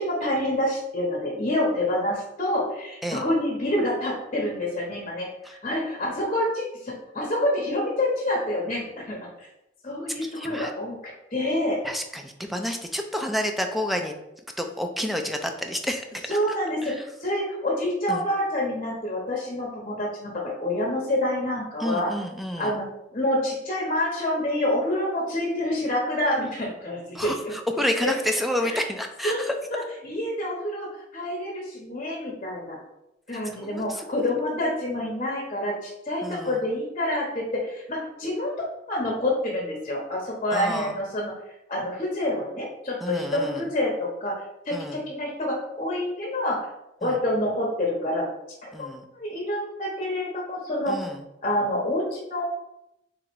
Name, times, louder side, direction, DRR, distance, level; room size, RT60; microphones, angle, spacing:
voice 1, 0.0-9.2 9.8-11.0 11.3-11.8 16.3-22.1 22.6-22.8 23.1-27.3 28.6-28.8 29.2-29.4 29.7-32.8 33.3-38.5 38.9-44.3 44.6-46.6 47.0-48.3 48.6-50.9 51.4-52.5, left 1 dB, 35° left, -2 dB, 1.0 m, -27 dB
voice 2, 10.2-10.7 11.8-14.1 14.6-16.6 16.8-17.0 18.1-18.2 21.8-22.8 27.1-29.6 33.5-34.3 36.2-36.6 40.5-41.0 43.0-43.7 44.7-45.0 47.0-47.2 48.7-49.0 50.9-51.2, left 1 dB, ahead, 4 dB, 0.4 m, -30 dB
3.7 x 3.0 x 4.5 m, 0.88 s
head